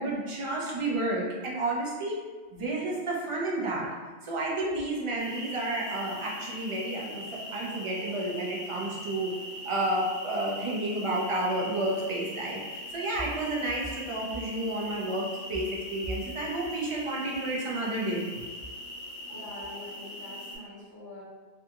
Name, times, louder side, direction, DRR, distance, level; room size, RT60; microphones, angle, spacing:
voice 1, 0.0-2.2 2.5-3.9 4.2-9.3 9.6-18.4, right 1 dB, 50° right, -3 dB, 0.4 m, -31 dB
sound 1, 5.2-20.6, left 1 dB, 60° left, 0.9 m, -41 dB
voice 2, 19.3-21.2, left 2 dB, 25° left, -10 dB, 0.6 m, -45 dB
2.6 x 2.3 x 2.7 m, 1.4 s
omnidirectional pair, 1.1 m